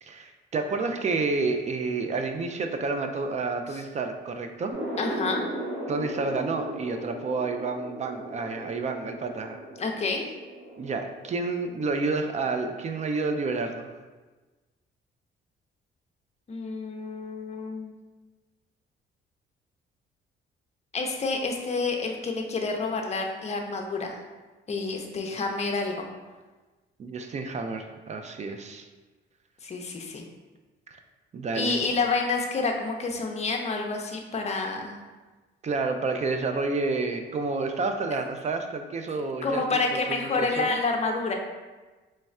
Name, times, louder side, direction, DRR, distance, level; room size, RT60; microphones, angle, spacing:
voice 1, 0.0-4.7 5.9-9.6 10.8-13.9 27.0-28.9 30.9-31.0 31.3-31.8 35.6-40.8, right 3 dB, 35° right, 5 dB, 0.4 m, -30 dB
sound 1, 4.7-13.9, right 1 dB, 55° right, 0.8 m, -38 dB
voice 2, 5.0-5.4 9.8-10.3 16.5-17.9 20.9-24.2 24.7-26.1 29.6-30.2 31.5-35.0 39.4-41.3, left 3 dB, 35° left, 2 dB, 0.6 m, -28 dB
3.2 x 2.3 x 4.2 m, 1.3 s
cardioid pair, 90°, 20 cm